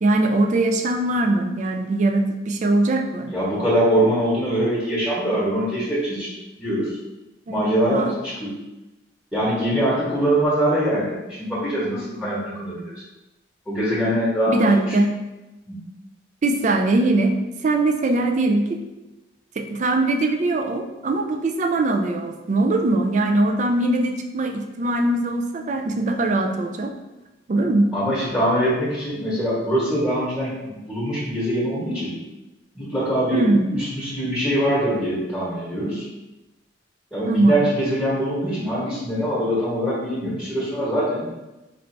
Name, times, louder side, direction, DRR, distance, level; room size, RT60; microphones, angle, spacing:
voice 1, 0.0-3.3 7.5-8.1 14.5-15.2 16.4-17.4 17.6-18.8 19.6-26.9 27.5-27.9 33.3-33.7 37.3-37.6, right 2 dB, 40° right, 4 dB, 0.3 m, -21 dB
voice 2, 3.3-7.0 7.5-8.5 9.3-12.9 13.7-14.8 15.7-15.8 27.9-32.1 32.7-33.4 33.7-36.1 37.1-41.3, equal, 5° left, -8 dB, 1.1 m, -23 dB
4.4 x 2.5 x 3.2 m, 1.0 s
head